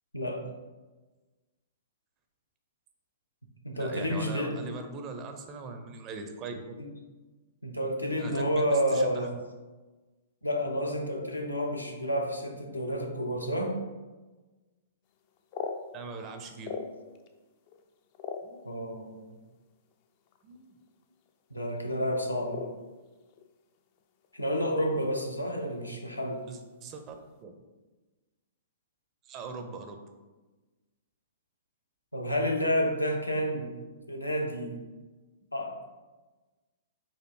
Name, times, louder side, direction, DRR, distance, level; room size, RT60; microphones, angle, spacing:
voice 1, 0.1-0.5 3.6-4.7 6.8-6.9 7.6-9.3 10.4-13.8 18.6-19.3 21.5-22.7 24.3-26.4 32.1-33.8 34.1-34.8 35.5-35.9, equal, 90° left, 1 dB, 0.7 m, -30 dB
voice 2, 3.7-6.7 8.2-9.3 15.9-17.0 18.4-18.6 20.4-20.7 26.5-27.2 27.4-27.5 29.3-30.0, right 4 dB, 30° right, 5 dB, 0.5 m, -41 dB
sound 1, 15.2-17.3 17.7-19.1 19.9-20.0 20.3-20.6 20.9-21.3 21.6-21.8 22.5-23.5 23.7-24.6 24.9-25.0 25.4-25.7 26.2-26.6, left 6 dB, 40° left, 0.4 m, -40 dB
4.2 x 2.6 x 4.5 m, 1.2 s
figure-of-eight pair, 110°, 0 cm